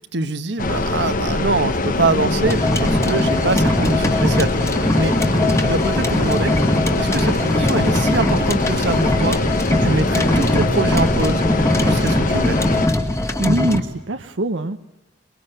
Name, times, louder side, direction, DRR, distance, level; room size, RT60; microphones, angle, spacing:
voice 1, 0.0-4.5 5.0-5.1 5.6-6.5 7.0-9.4 9.7-11.4 11.8-12.6, right 3 dB, 65° right, 11 dB, 1.3 m, -23 dB
sound 1, 0.6-12.9, left 2 dB, 45° left, 1.1 m, -22 dB
sound 2, 2.5-13.8, left 1 dB, 15° left, 1.7 m, -20 dB
sound 3, 3.3-10.7, left 7 dB, 40° right, 1.8 m, -36 dB
voice 2, 13.4-14.8, right 1 dB, 80° right, 7 dB, 0.9 m, -23 dB
23.5 x 22.0 x 8.0 m, 1.0 s
head